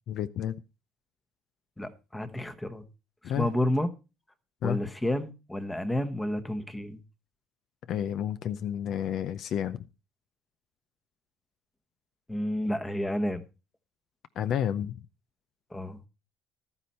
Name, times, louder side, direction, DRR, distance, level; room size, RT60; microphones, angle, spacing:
voice 1, 0.1-0.5 3.2-3.5 4.6-4.8 7.9-9.9 14.4-15.1, left 10 dB, 50° left, 0.6 m, -30 dB
voice 2, 1.8-2.8 3.4-3.9 4.6-7.0 12.3-13.4 15.7-16.0, left 1 dB, 5° left, 1.1 m, -30 dB
12.5 x 9.8 x 4.3 m
cardioid pair, 150°, 0 cm